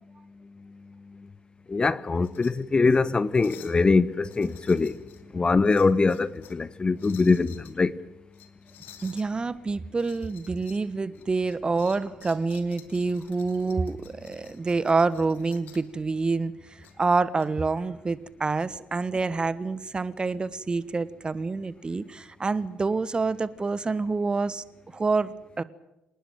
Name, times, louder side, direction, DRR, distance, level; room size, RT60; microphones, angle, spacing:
voice 1, 0.2-1.3 1.7-8.0, left 4 dB, 25° left, 1.0 m, -24 dB
sound 1, 2.1-2.5 2.9-3.0 3.4-3.8 4.2-5.2 5.6-6.6 7.0-7.7 8.3-9.3 9.9-10.8 11.1-15.9 16.8-17.5, left 11 dB, 60° left, 2.6 m, -52 dB
voice 2, 9.0-16.5 17.0-24.6 24.9-25.6, right 3 dB, 25° right, 1.3 m, -27 dB
27.0 x 19.0 x 9.1 m
figure-of-eight pair, 50°, 4 cm